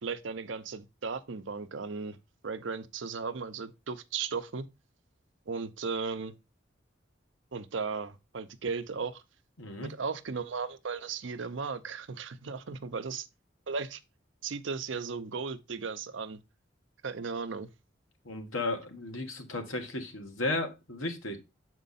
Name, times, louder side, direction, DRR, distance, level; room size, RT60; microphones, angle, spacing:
voice 1, 0.0-2.2 2.4-4.7 5.5-6.3 7.5-9.2 9.8-13.3 13.7-14.0 14.4-16.4 17.0-17.7, right 5 dB, 70° right, 0.6 m, -36 dB
voice 2, 9.6-9.9 18.2-21.4, left 2 dB, 85° left, 1.4 m, -34 dB
6.4 x 4.5 x 4.1 m
head